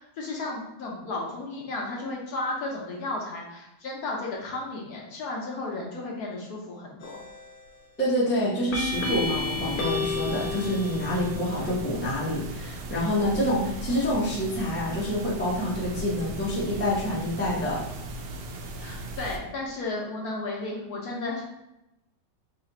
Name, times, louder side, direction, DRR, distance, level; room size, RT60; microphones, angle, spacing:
voice 1, 0.0-7.2 18.8-21.5, left 2 dB, 65° left, -2 dB, 1.1 m, -34 dB
sound 1, 7.0-7.5 8.7-11.5, left 3 dB, 90° left, 1.4 m, -31 dB
voice 2, 8.0-17.8, equal, 10° left, -6 dB, 0.5 m, -27 dB
sound 2, 8.9-19.4, right 1 dB, 75° right, 1.1 m, -37 dB
3.2 x 2.8 x 4.0 m, 0.89 s
omnidirectional pair, 2.0 m